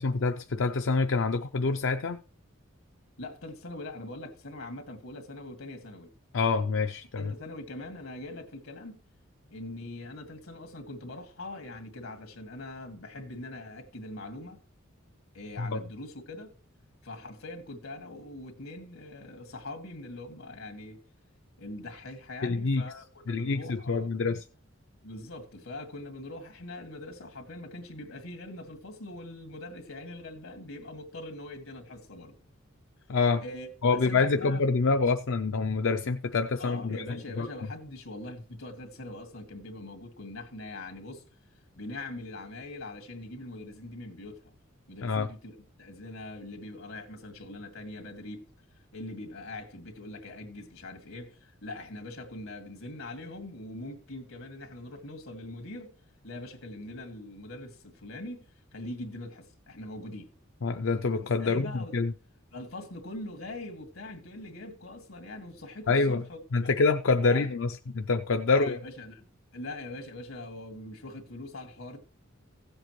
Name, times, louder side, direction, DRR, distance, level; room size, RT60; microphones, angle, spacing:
voice 1, 0.0-2.2 6.3-7.3 15.6-15.8 22.4-22.8 23.3-24.4 33.1-33.4 33.8-37.0 37.4-37.5 45.0-45.3 60.6-62.1 65.9-66.2 66.5-68.8, left 4 dB, 65° left, 0.5 m, -26 dB
voice 2, 3.2-6.1 7.2-9.0 9.5-14.6 15.3-16.5 17.0-21.0 21.6-24.1 25.0-32.4 33.4-34.6 35.0-35.1 36.6-41.2 41.8-44.5 44.9-45.5 45.8-48.5 48.9-55.9 56.2-58.4 58.7-60.3 61.2-62.0 62.5-66.4 67.2-67.5 68.5-69.2 69.5-72.0, left 2 dB, 85° left, 2.2 m, -42 dB
16.0 x 7.8 x 3.1 m
head